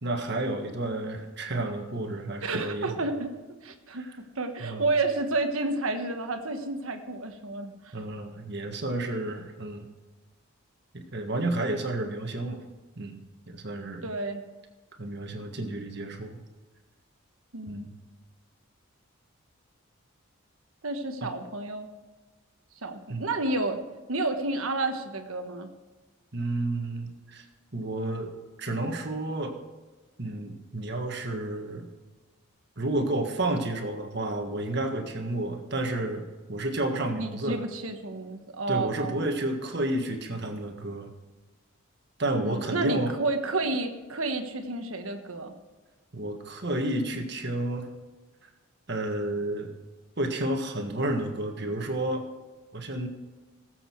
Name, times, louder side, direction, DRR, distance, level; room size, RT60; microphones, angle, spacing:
voice 1, 0.0-3.0 3.9-4.2 4.6-4.9 7.9-9.9 10.9-12.6 13.0-13.2 13.5-14.1 15.0-16.4 17.7-17.9 21.2-21.3 23.1-23.2 26.3-27.4 27.7-28.3 28.6-29.6 30.2-31.9 32.8-37.6 38.7-41.1 42.2-43.1 46.1-47.9 48.9-49.7 50.2-52.2 52.7-53.1, right 1 dB, 50° right, 4 dB, 1.6 m, -31 dB
voice 2, 2.4-3.3 3.6-4.1 4.3-8.0 14.0-14.4 17.5-17.9 20.8-21.9 22.8-23.8 24.1-25.7 37.1-39.3 42.3-45.5, right 2 dB, 75° right, 6 dB, 1.3 m, -30 dB
18.0 x 7.9 x 4.6 m, 1.3 s
head